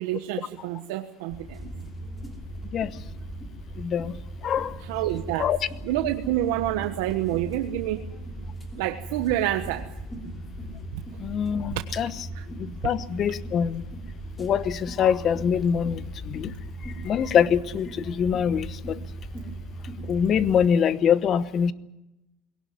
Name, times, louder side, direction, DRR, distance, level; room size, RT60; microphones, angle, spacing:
voice 1, 0.0-1.7 4.9-5.5 5.8-8.0 8.8-9.9 11.7-11.8 12.3-12.4, right 14 dB, 80° right, 6 dB, 1.3 m, -28 dB
sound 1, 1.3-20.7, right 1 dB, 10° left, 3.0 m, -38 dB
voice 2, 3.8-4.2 4.4-4.8 5.4-5.6 11.2-12.1 12.6-13.8 14.4-16.5 16.8-19.0 20.1-21.7, left 8 dB, 35° left, 15 dB, 1.0 m, -24 dB
21.5 x 18.0 x 9.5 m, 0.96 s
supercardioid pair, 140°, 0 cm